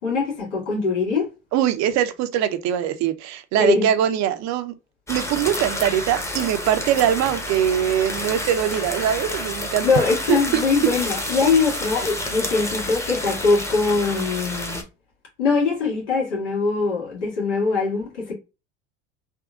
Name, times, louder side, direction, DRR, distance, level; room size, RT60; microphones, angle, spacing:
voice 1, 0.0-1.3 3.6-3.9 9.8-14.8 15.4-18.3, left 4 dB, 85° left, 1.9 m, -22 dB
voice 2, 1.5-4.7 5.1-9.9 10.3-10.4, right 10 dB, 55° right, 0.6 m, -22 dB
Frying Sausage, 5.1-14.8, left 1 dB, 10° left, 0.9 m, -29 dB
3.7 x 2.7 x 2.3 m
hypercardioid pair, 80°, 34 cm